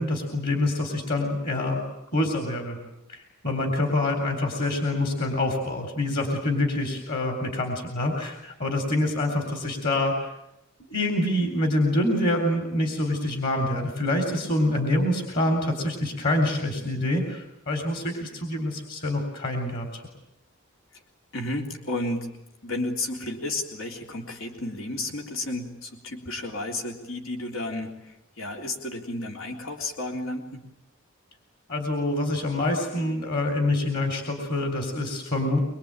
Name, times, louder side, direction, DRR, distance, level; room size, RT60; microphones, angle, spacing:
voice 1, 0.0-1.8 2.1-2.8 3.1-10.3 10.9-20.0 31.7-35.6, left 1 dB, 50° left, 4 dB, 4.0 m, -26 dB
voice 2, 21.3-22.3 22.6-30.6, left 2 dB, 80° left, 2 dB, 3.6 m, -32 dB
24.0 x 24.0 x 9.0 m, 0.85 s
head